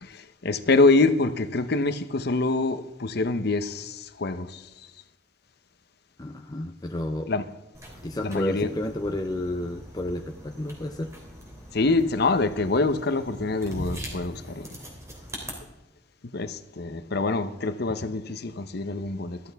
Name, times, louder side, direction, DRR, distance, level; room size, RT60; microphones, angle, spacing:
voice 1, 0.0-4.7 7.3-7.5 8.2-8.7 11.7-14.7 16.2-19.4, left 3 dB, 60° left, 0.8 m, -25 dB
voice 2, 6.2-7.3 8.0-11.1, left 1 dB, 20° left, 0.5 m, -31 dB
sound 1, 7.7-15.5, equal, 15° right, 3.1 m, -41 dB
14.0 x 13.5 x 3.5 m
head